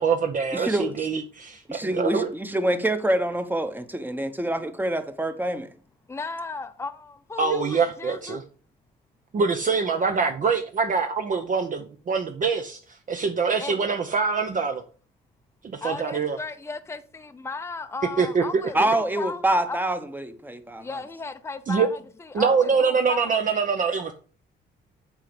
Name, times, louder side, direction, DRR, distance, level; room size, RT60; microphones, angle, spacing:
voice 1, 0.0-2.3 7.4-8.4 9.3-14.8 15.6-16.4 18.2-18.4 21.7-21.9 22.3-24.1, right 5 dB, 40° right, 0.7 m, -24 dB
voice 2, 0.5-0.9 1.7-5.7 18.7-20.8, right 1 dB, 10° right, 0.9 m, -26 dB
voice 3, 6.1-8.4 13.6-13.7 15.8-19.8 20.8-23.4, left 4 dB, 15° left, 0.6 m, -36 dB
7.4 x 3.9 x 5.1 m
cardioid pair, 90°, 20 cm